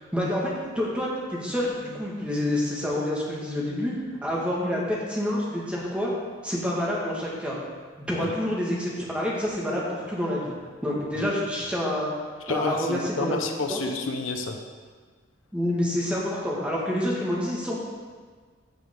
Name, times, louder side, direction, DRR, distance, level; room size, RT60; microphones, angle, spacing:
voice 1, 0.0-3.9 4.2-6.1 6.4-7.6 8.0-10.5 10.8-12.1 12.5-13.4 13.7-13.8 15.5-17.8, left 1 dB, 5° right, -5 dB, 1.7 m, -28 dB
voice 2, 12.5-14.6, left 3 dB, 80° left, 4 dB, 0.8 m, -30 dB
15.5 x 5.2 x 3.8 m, 1.5 s
head